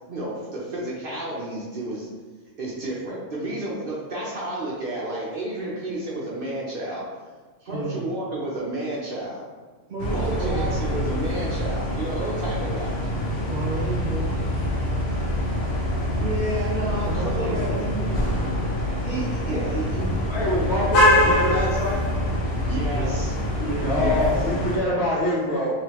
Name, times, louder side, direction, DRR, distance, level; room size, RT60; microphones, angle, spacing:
voice 1, 0.1-2.1 2.6-7.1 7.6-9.4 10.1-13.0 16.2-18.1 19.0-20.1 22.7-23.3 23.9-24.3, right 1 dB, 55° right, -5 dB, 0.7 m, -31 dB
voice 2, 7.7-8.0 9.9-10.7 13.4-14.4 14.9-16.1 17.0-17.9 22.9-23.3 23.6-24.3, right 2 dB, 90° right, -5 dB, 0.4 m, -33 dB
sound 1, 10.0-24.8, left 1 dB, 80° left, 1.3 m, -25 dB
voice 3, 20.2-22.0 23.8-25.7, left 1 dB, 55° left, -6 dB, 1.2 m, -25 dB
3.2 x 3.0 x 2.9 m, 1.4 s
omnidirectional pair, 1.4 m